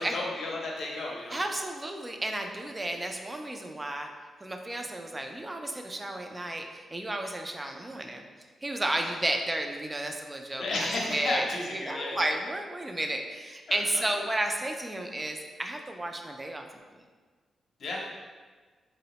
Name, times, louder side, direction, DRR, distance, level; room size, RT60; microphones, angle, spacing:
voice 1, 0.0-1.4 9.0-9.1 10.6-12.3 13.7-14.1 17.8-18.1, left 2 dB, 70° left, -2 dB, 0.6 m, -33 dB
voice 2, 1.3-4.1 4.4-8.2 8.6-10.6 11.1-11.5 11.9-16.6, right 1 dB, 20° right, 4 dB, 0.3 m, -32 dB
3.6 x 2.0 x 2.8 m, 1.4 s
cardioid pair, 95°, 0 cm